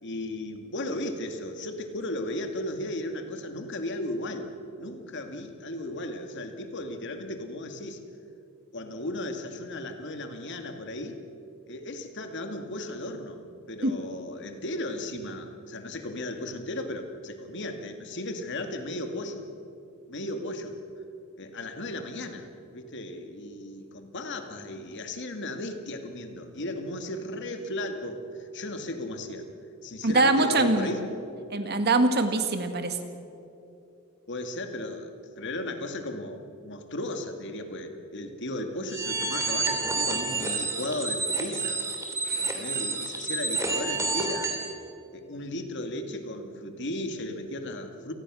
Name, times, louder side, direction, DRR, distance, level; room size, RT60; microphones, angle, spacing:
voice 1, 0.0-4.5 4.8-8.0 8.7-11.2 11.7-19.5 20.1-20.8 21.4-22.5 22.7-29.5 29.8-31.1 34.3-41.8 42.4-44.6 45.1-48.1, left 1 dB, 60° left, 6 dB, 2.2 m, -35 dB
voice 2, 30.0-30.9 31.5-33.0 42.3-42.6, right 2 dB, 50° right, 7 dB, 2.0 m, -23 dB
sound 1, 38.9-44.7, right 3 dB, 15° right, 3.2 m, -29 dB
28.5 x 19.5 x 6.3 m, 2.8 s
head